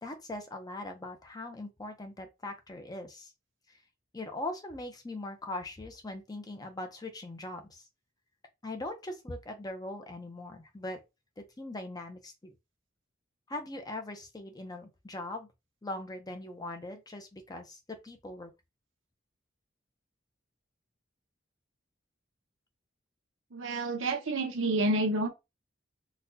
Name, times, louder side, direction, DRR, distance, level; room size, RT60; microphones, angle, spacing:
voice 1, 0.0-3.3 4.1-7.8 8.6-11.0 11.4-12.5 13.5-15.5 15.8-18.5, left 2 dB, 20° left, 0.6 m, -41 dB
voice 2, 23.5-25.3, right 2 dB, 80° right, 0.8 m, -29 dB
4.0 x 2.3 x 2.7 m
head